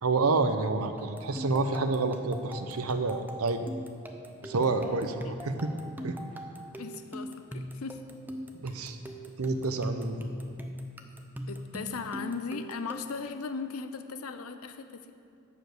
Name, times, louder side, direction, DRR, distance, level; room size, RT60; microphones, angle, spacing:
voice 1, 0.0-3.7 4.4-5.7 6.0-6.2 8.6-9.0 9.4-10.2, right 3 dB, 85° right, 8 dB, 0.7 m, -28 dB
sound 1, 1.0-13.3, equal, 10° right, 0.6 m, -41 dB
voice 2, 4.8-5.3 6.8-8.0 11.5-15.1, left 5 dB, 85° left, 8 dB, 0.6 m, -38 dB
11.0 x 5.2 x 7.9 m, 2.4 s
head